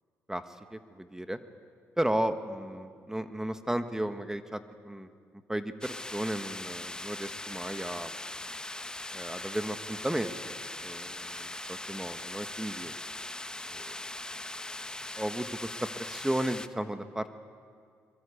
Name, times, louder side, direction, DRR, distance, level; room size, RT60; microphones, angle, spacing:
voice 1, 0.7-1.4 2.0-5.1 5.5-8.1 9.1-10.5 10.8-12.9 13.7-13.9 15.2-17.3, right 1 dB, 10° right, 9 dB, 1.4 m, -34 dB
sound 1, 5.8-16.7, left 2 dB, 15° left, 1.0 m, -40 dB
23.5 x 23.0 x 8.4 m, 2.1 s
supercardioid pair, 60°, 6 cm